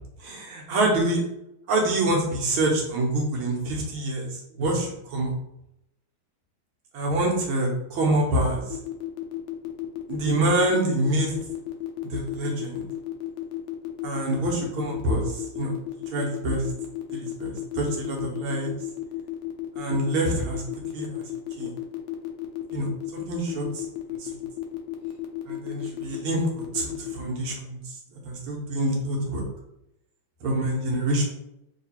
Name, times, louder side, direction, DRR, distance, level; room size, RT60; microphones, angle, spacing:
voice 1, 0.2-1.2 1.7-5.3 6.9-8.8 10.1-11.4 12.0-12.9 14.0-15.7 16.1-16.6 17.1-18.7 19.8-21.2 21.6-21.7 22.7-23.8 24.2-24.3 25.5-26.4 26.7-28.0 28.3-29.5 30.4-31.2, right 1 dB, 85° right, -1 dB, 1.8 m, -26 dB
sound 1, 8.7-27.1, left 15 dB, 90° left, 1.4 m, -33 dB
3.8 x 2.9 x 2.9 m, 0.80 s
omnidirectional pair, 2.2 m